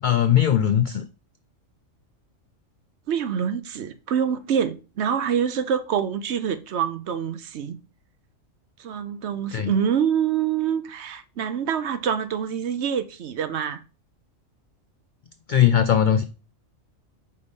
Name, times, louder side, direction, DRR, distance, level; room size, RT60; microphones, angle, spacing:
voice 1, 0.0-1.1 9.5-9.7 15.5-16.2, left 9 dB, 85° left, 0.4 m, -19 dB
voice 2, 3.1-7.8 8.8-13.8, right 8 dB, 60° right, 0.9 m, -26 dB
5.4 x 4.0 x 5.1 m
omnidirectional pair, 1.4 m